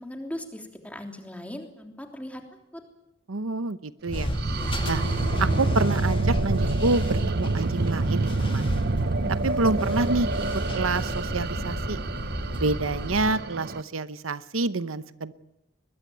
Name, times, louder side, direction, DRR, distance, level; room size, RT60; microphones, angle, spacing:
voice 1, 0.0-2.4 2.7-2.8, left 1 dB, 5° left, 3 dB, 3.3 m, -38 dB
voice 2, 3.3-4.3 4.8-5.0 5.4-8.7 9.3-10.3 10.7-12.0 12.5-15.3, right 3 dB, 85° right, 14 dB, 0.9 m, -27 dB
sound 1, 4.1-13.3, equal, 25° left, 1.8 m, -31 dB
sound 2, 4.1-13.8, right 3 dB, 55° right, 0.8 m, -28 dB
22.5 x 21.0 x 9.2 m, 0.88 s
head